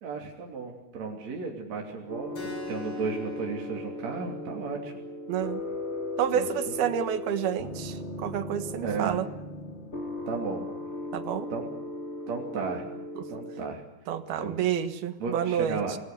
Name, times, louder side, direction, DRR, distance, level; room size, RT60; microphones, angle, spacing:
voice 1, 0.0-4.9 6.3-6.8 8.8-9.2 10.3-10.6 11.5-11.7 12.3-12.9 13.3-13.8 14.4-14.6 15.2-15.9, right 4 dB, 50° right, 0 dB, 4.0 m, -34 dB
sound 1, 2.1-13.6, left 2 dB, 20° left, 2.7 m, -37 dB
Keyboard (musical), 2.4-7.5, left 2 dB, 55° left, 7.6 m, -46 dB
voice 2, 5.3-5.6 6.2-9.3 11.1-11.5 14.1-16.0, right 9 dB, 80° right, 10 dB, 3.5 m, -29 dB
29.0 x 19.5 x 6.9 m, 0.91 s
omnidirectional pair, 4.4 m